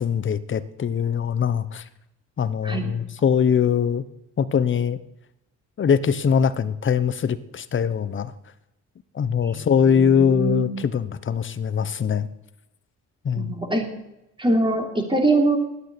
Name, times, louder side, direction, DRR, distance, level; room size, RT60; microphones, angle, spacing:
voice 1, 0.0-1.8 2.4-4.0 4.4-5.0 5.8-8.3 9.1-12.3 13.2-13.5, left 7 dB, 40° left, 14 dB, 1.0 m, -22 dB
voice 2, 9.4-10.7 13.4-13.9 14.4-15.6, right 2 dB, 15° right, 2 dB, 3.5 m, -23 dB
11.5 x 9.0 x 9.9 m, 0.88 s
cardioid pair, 90°, 30 cm